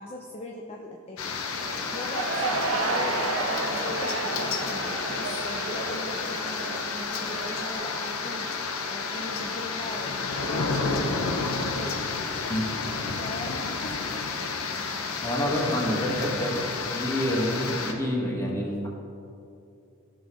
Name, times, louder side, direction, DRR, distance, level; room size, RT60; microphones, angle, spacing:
voice 1, 0.0-1.6 1.9-12.0 13.1-14.3, left 1 dB, 30° left, -1 dB, 0.6 m, -40 dB
sound 1, 1.2-17.9, left 4 dB, 85° left, 0.8 m, -31 dB
sound 2, 1.6-7.7, right 3 dB, 70° right, 1.0 m, -31 dB
voice 2, 15.2-16.5 16.8-18.9, equal, 15° left, -3 dB, 1.6 m, -27 dB
14.5 x 6.2 x 3.2 m, 2.6 s
head